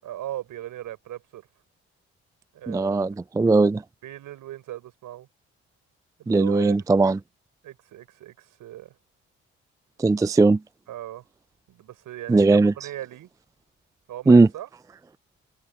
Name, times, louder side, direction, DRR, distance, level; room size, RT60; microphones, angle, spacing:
voice 1, 0.0-1.5 2.5-3.1 4.0-5.3 6.2-6.8 7.6-9.0 10.9-11.3 11.7-13.3 14.1-14.7, right 13 dB, 70° right, 5.4 m, -38 dB
voice 2, 2.7-3.8 6.3-7.2 10.0-10.6 12.3-12.7 14.3-14.5, right 3 dB, 10° right, 0.4 m, -18 dB
hypercardioid pair, 45°, 33 cm